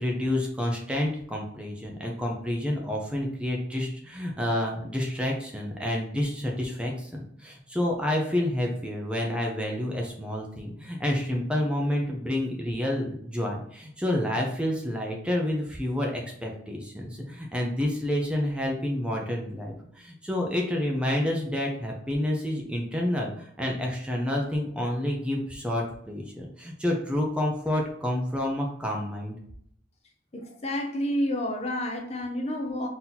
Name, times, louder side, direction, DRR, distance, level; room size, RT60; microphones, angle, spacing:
voice 1, 0.0-29.3, left 1 dB, 5° right, 0 dB, 0.6 m, -29 dB
voice 2, 30.3-32.9, left 1 dB, 35° left, 3 dB, 0.6 m, -29 dB
4.1 x 2.8 x 3.9 m, 0.68 s
head